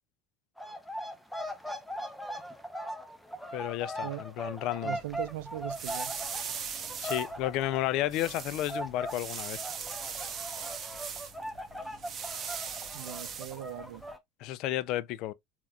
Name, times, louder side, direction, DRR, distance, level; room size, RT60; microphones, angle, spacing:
sound 1, 0.6-8.4 8.7-14.2, equal, ahead, 0.7 m, -40 dB
voice 1, 3.5-5.0 7.0-9.6 14.4-15.3, left 14 dB, 60° left, 0.3 m, -32 dB
voice 2, 4.8-6.1 12.9-14.0, right 14 dB, 85° right, 0.4 m, -39 dB
sound 2, 4.9-14.1, right 6 dB, 35° right, 0.9 m, -40 dB
3.9 x 2.9 x 2.2 m
supercardioid pair, 110°, 0 cm